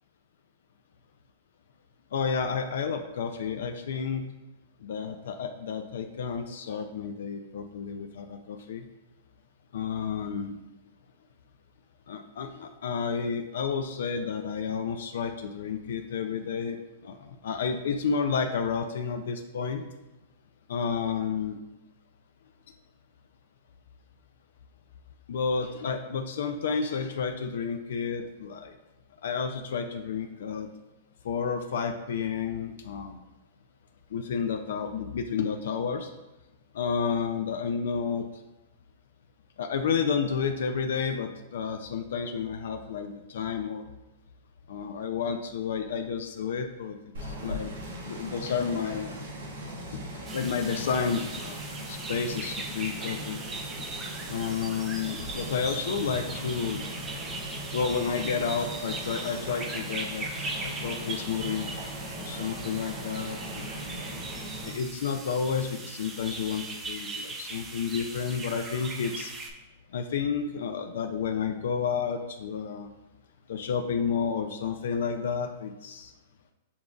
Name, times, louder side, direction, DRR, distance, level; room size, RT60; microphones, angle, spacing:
voice 1, 2.1-4.3 4.8-8.9 9.7-10.6 12.1-16.8 17.0-19.8 20.7-21.6 25.3-28.7 29.2-30.7 31.2-33.2 34.1-36.1 36.7-38.3 39.6-43.8 44.7-47.7 48.0-49.1 49.9-50.0 50.3-51.6 51.9-53.4 54.3-56.8 57.7-61.7 62.2-63.7 64.6-69.3 69.9-72.9 73.5-76.1, left 6 dB, 75° left, 5 dB, 0.3 m, -31 dB
sound 1, 47.1-64.7, equal, 85° right, 1.0 m, -39 dB
sound 2, 50.3-69.5, right 3 dB, 15° right, 0.4 m, -39 dB
6.8 x 2.5 x 2.3 m, 1.0 s
hypercardioid pair, 155°, 0 cm